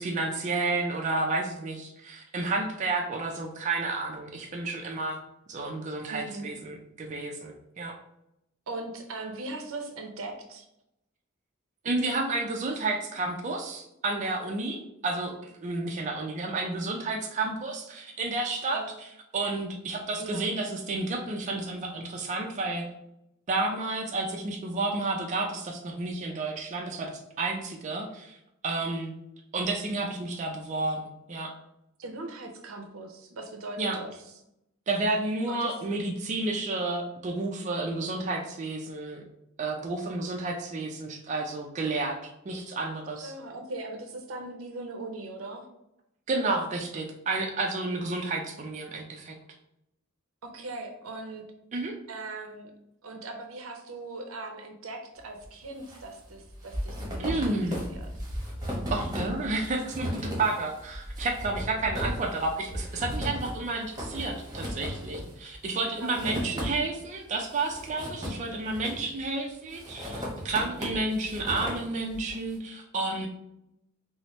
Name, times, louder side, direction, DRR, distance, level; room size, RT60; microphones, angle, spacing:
voice 1, 0.0-5.2 5.5-8.0 11.8-15.3 15.6-22.8 23.5-28.4 28.6-29.1 29.5-31.5 33.8-34.0 34.9-39.2 39.6-43.3 46.3-49.4 51.7-52.0 57.2-57.8 58.9-73.3, right 2 dB, 35° right, 1 dB, 0.4 m, -31 dB
voice 2, 6.1-6.5 8.7-10.7 18.7-18.9 20.2-20.5 32.0-34.1 35.5-35.7 43.2-45.7 50.4-51.4 52.1-52.7 53.0-57.6 57.9-58.1 66.0-66.5, right 2 dB, 85° right, 4 dB, 0.6 m, -39 dB
sound 1, 55.4-56.0 56.3-67.0 67.4-69.2 69.7-72.4, equal, 20° right, 1.0 m, -36 dB
4.2 x 2.0 x 3.0 m, 0.82 s
head